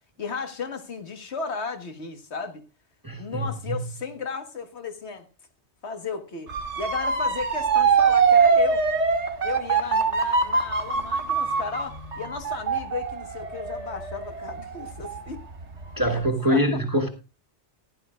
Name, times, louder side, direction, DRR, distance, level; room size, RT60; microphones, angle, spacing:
voice 1, 0.2-2.6 3.2-5.2 5.8-8.8 9.4-15.4 16.1-16.2 16.5-16.6, left 5 dB, 70° left, 1.8 m, -34 dB
voice 2, 3.0-3.7 16.0-17.1, equal, 20° right, 1.4 m, -24 dB
Motor vehicle (road) / Siren, 6.5-15.4 15.8-16.3, right 5 dB, 80° right, 2.1 m, -23 dB
15.0 x 11.5 x 2.4 m
omnidirectional pair, 1.2 m